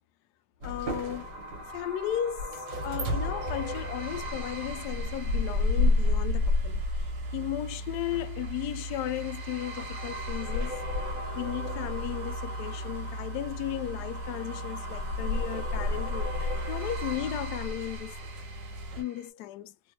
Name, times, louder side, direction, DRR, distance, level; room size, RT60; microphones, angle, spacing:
voice 1, 0.6-1.4 1.7-6.8 7.3-10.9 11.4-18.1 19.0-19.7, left 12 dB, 70° left, 1.0 m, -35 dB
sound 1, 0.6-19.3, equal, 55° right, 1.8 m, -42 dB
sound 2, 0.6-19.0, left 2 dB, 70° right, 1.6 m, -32 dB
3.6 x 2.9 x 2.2 m
omnidirectional pair, 2.0 m